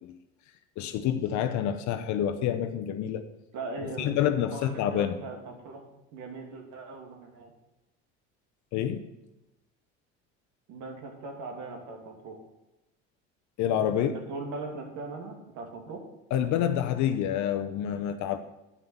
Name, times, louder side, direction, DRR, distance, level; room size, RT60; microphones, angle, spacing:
voice 1, 0.8-3.3 3.8-5.1 8.7-9.1 13.6-14.1 16.3-18.4, left 10 dB, 60° left, 9 dB, 0.8 m, -28 dB
voice 2, 3.5-4.2 4.5-5.8 6.1-7.5 10.7-12.4 13.9-16.0, right 3 dB, 70° right, 2 dB, 2.6 m, -39 dB
9.5 x 5.8 x 7.1 m, 0.97 s
supercardioid pair, 80°, 32 cm